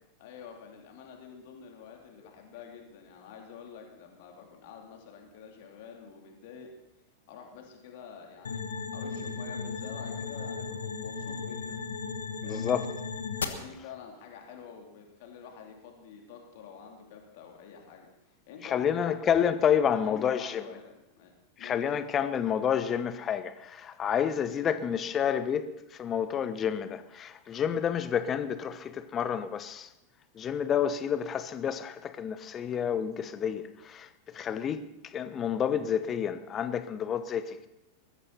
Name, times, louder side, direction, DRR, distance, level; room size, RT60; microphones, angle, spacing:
voice 1, 0.2-6.7 7.3-8.6 8.9-11.8 12.4-12.9 13.5-19.2 19.9-21.3 21.6-21.8, left 6 dB, 50° left, 3.2 m, -48 dB
sound 1, 8.4-13.4, left 5 dB, 70° left, 1.3 m, -35 dB
voice 2, 12.4-12.9 18.6-20.7 21.6-29.9 30.3-37.7, left 8 dB, 25° left, 1.0 m, -29 dB
20.5 x 15.0 x 4.2 m
figure-of-eight pair, 90°, 0 cm